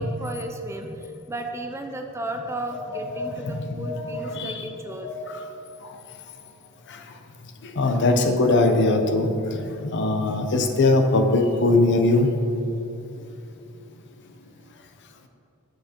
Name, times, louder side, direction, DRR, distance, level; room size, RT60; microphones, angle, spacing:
voice 1, 0.0-5.1 14.6-14.7, right 1 dB, 10° right, 4 dB, 0.3 m, -34 dB
voice 2, 2.9-4.7 5.0-5.4 6.9-7.0 7.6-12.3, left 2 dB, 55° left, 6 dB, 0.6 m, -22 dB
7.5 x 6.3 x 2.9 m, 2.9 s
head